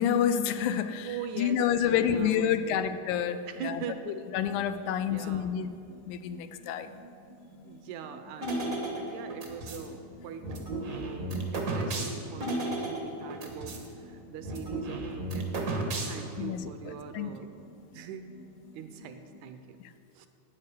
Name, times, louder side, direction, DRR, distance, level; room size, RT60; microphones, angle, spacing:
voice 1, 0.0-3.8 4.3-5.7 6.0-6.9 16.4-16.6 17.1-17.3, left 9 dB, 85° left, 10 dB, 2.0 m, -28 dB
voice 2, 1.0-2.8 3.5-4.2 5.1-5.6 7.6-17.7 17.9-18.3 18.7-19.8 20.1-20.3, right 7 dB, 80° right, 8 dB, 1.9 m, -42 dB
sound 1, 3.5-19.5, left 1 dB, 60° left, 1.5 m, -53 dB
sound 2, 8.4-9.9 10.4-13.9 14.1-14.2 14.4-16.4, right 2 dB, 65° right, 0.9 m, -34 dB
9.1 x 8.6 x 6.9 m, 2.5 s
omnidirectional pair, 3.5 m